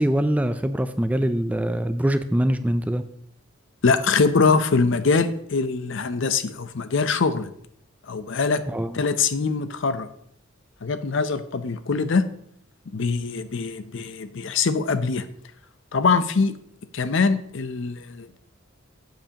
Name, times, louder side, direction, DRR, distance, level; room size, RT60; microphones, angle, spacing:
voice 1, 0.0-3.1 8.7-9.0, right 1 dB, 5° right, 10 dB, 0.3 m, -23 dB
voice 2, 3.8-7.5 8.1-8.6 8.9-10.1 10.8-12.3 12.9-15.3 15.9-16.5 16.9-18.4, left 4 dB, 60° left, 12 dB, 0.6 m, -23 dB
12.0 x 7.7 x 2.9 m, 0.70 s
head